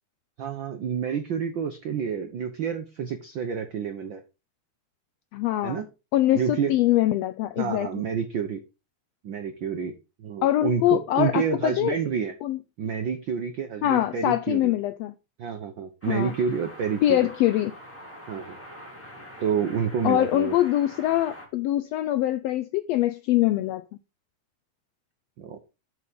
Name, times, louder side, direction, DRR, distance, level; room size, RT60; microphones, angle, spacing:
voice 1, 0.4-4.2 5.6-5.9 6.3-6.7 7.6-8.6 9.2-9.9 10.2-12.3 12.8-14.7 15.4-17.2 18.3-18.6 19.4-20.6 25.4-25.6, right 7 dB, 80° right, 1.0 m, -28 dB
voice 2, 5.3-5.8 6.1-7.9 10.4-12.0 12.4-12.6 13.8-15.1 16.1-16.3 17.0-17.7 20.0-23.8, left 14 dB, 85° left, 1.4 m, -23 dB
sound 1, 16.0-21.5, equal, 5° left, 3.0 m, -44 dB
6.8 x 6.5 x 5.2 m
omnidirectional pair, 3.5 m